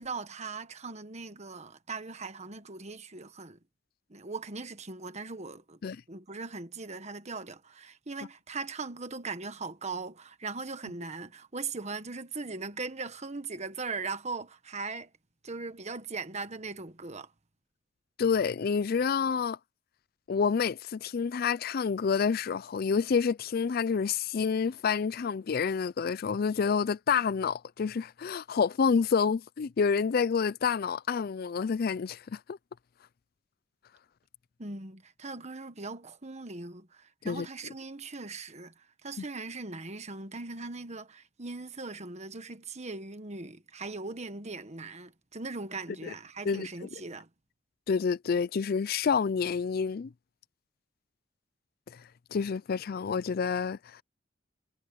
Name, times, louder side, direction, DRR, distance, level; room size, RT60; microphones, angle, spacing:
voice 1, 0.0-3.6 4.1-5.8 6.1-15.1 15.4-17.3 34.6-47.3, right 3 dB, 35° right, 1.5 m, -39 dB
voice 2, 18.2-19.6 20.3-32.6 37.2-37.5 46.0-46.1 46.4-46.9 47.9-50.1 51.9-52.0 52.3-54.0, left 6 dB, 55° left, 0.4 m, -28 dB
head